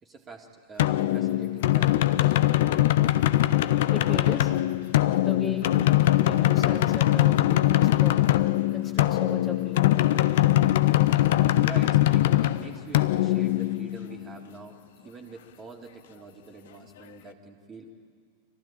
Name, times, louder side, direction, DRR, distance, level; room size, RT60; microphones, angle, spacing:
voice 1, 0.0-2.4 11.6-17.9, right 4 dB, 20° right, 2 dB, 2.2 m, -45 dB
sound 1, 0.8-14.3, left 15 dB, 55° left, 0.6 m, -22 dB
voice 2, 3.9-4.5 5.2-5.7 6.1-8.3 8.7-10.0, left 2 dB, 25° left, 2 dB, 2.4 m, -37 dB
24.5 x 15.5 x 8.7 m, 2.1 s
figure-of-eight pair, 90°, 0 cm